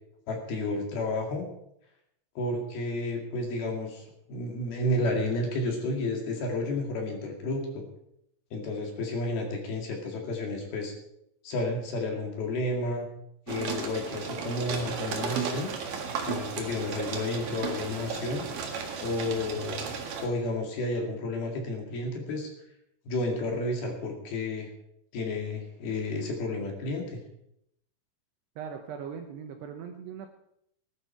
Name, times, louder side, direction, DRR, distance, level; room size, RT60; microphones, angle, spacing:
voice 1, 0.3-1.4 2.4-4.0 4.3-7.8 8.5-10.9 11.4-13.1 13.5-15.7 16.3-18.5 19.0-19.9 20.2-22.5 23.1-24.7 25.1-27.2, left 2 dB, 55° left, 2 dB, 3.8 m, -31 dB
sound 1, 13.5-20.3, right 6 dB, 55° right, 2.7 m, -34 dB
voice 2, 28.6-30.3, right 7 dB, 75° right, 4 dB, 2.6 m, -39 dB
19.0 x 12.0 x 4.5 m, 0.76 s
omnidirectional pair, 5.7 m